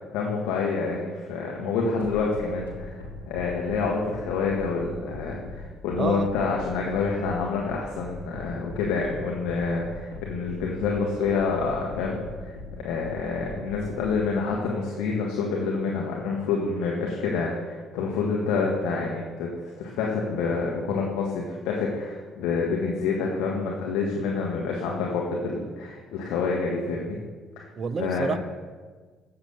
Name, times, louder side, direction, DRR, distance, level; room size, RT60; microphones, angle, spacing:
voice 1, 0.0-27.2 27.6-27.7 28.0-28.4, left 4 dB, 65° left, -1 dB, 1.8 m, -28 dB
sound 1, 2.0-14.2, left 2 dB, 90° left, 1.6 m, -40 dB
voice 2, 6.0-6.3 27.8-28.4, right 6 dB, 45° right, 14 dB, 0.6 m, -28 dB
13.0 x 8.8 x 6.6 m, 1.4 s
figure-of-eight pair, 45°, 0 cm